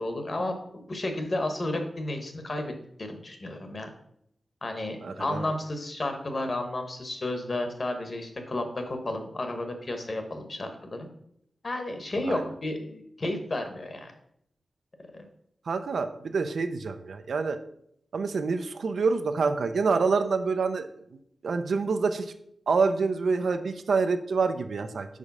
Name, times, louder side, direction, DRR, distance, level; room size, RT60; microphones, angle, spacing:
voice 1, 0.0-3.9 4.6-11.1 11.6-14.1 15.1-15.3, left 1 dB, 40° left, 6 dB, 1.0 m, -32 dB
voice 2, 5.0-5.4 12.3-12.4 15.7-17.6 18.1-20.9 21.4-22.3 22.7-25.1, right 4 dB, 75° right, 9 dB, 0.5 m, -27 dB
5.0 x 4.9 x 5.4 m, 0.71 s
wide cardioid pair, 145°, 0 cm